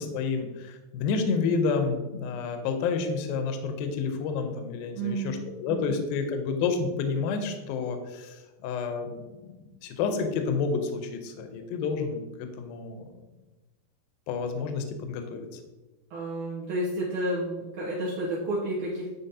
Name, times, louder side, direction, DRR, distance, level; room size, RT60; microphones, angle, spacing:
voice 1, 0.0-13.1 14.3-15.6, left 5 dB, 80° left, 6 dB, 2.2 m, -30 dB
voice 2, 4.9-5.4 5.7-5.9 16.1-19.1, right 1 dB, 80° right, -6 dB, 1.8 m, -31 dB
9.3 x 4.0 x 2.7 m, 1.1 s
omnidirectional pair, 4.9 m